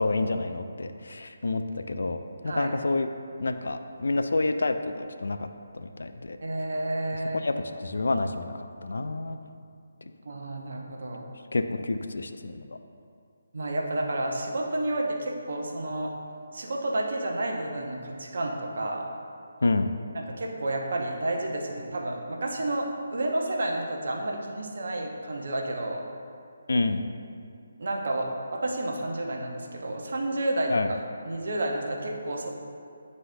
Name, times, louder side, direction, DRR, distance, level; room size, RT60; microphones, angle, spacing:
voice 1, 0.0-3.1 3.4-5.5 5.7-6.4 7.4-7.5 7.8-9.4 11.5-12.8 19.6-19.9 26.7-27.1 30.7-30.9, left 2 dB, 60° left, 8 dB, 0.3 m, -28 dB
voice 2, 6.4-7.4 10.3-11.3 13.5-16.1 16.5-19.1 20.1-26.1 27.8-30.7 31.2-32.5, right 1 dB, 55° right, 0 dB, 0.8 m, -30 dB
9.0 x 4.1 x 2.7 m, 2.4 s
figure-of-eight pair, 145°, 0 cm